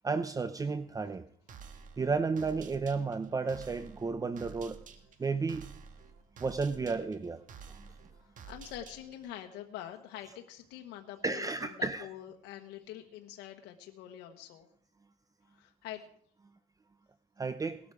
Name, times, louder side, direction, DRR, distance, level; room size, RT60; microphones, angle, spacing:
voice 1, 0.0-1.2 2.0-4.8 5.2-5.6 6.4-7.4 7.7-7.8 11.2-12.1 17.4-17.8, right 4 dB, 20° right, 11 dB, 0.7 m, -32 dB
sound 1, 1.5-9.4, right 6 dB, 50° right, 1.6 m, -51 dB
voice 2, 8.2-11.5 11.8-14.7 15.5-16.0, left 12 dB, 90° left, 4 dB, 1.3 m, -45 dB
18.5 x 12.0 x 4.8 m, 0.64 s
cardioid pair, 110°, 17 cm